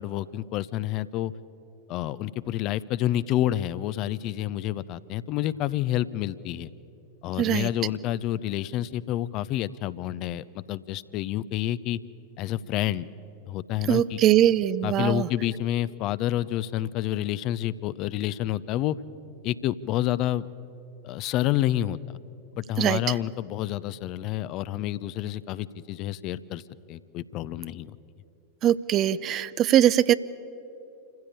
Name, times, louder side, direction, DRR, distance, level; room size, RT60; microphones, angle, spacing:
voice 1, 0.0-1.3 1.9-6.7 7.2-12.0 12.4-13.1 13.5-14.2 14.8-19.0 19.4-20.5 21.0-22.2 22.5-26.6 26.9-28.0, left 13 dB, 40° left, 17 dB, 0.6 m, -29 dB
voice 2, 7.4-7.7 13.9-15.3 22.8-23.0 28.6-30.1, right 11 dB, 35° right, 17 dB, 0.5 m, -21 dB
27.5 x 15.5 x 8.6 m, 2.8 s
figure-of-eight pair, 90°, 0 cm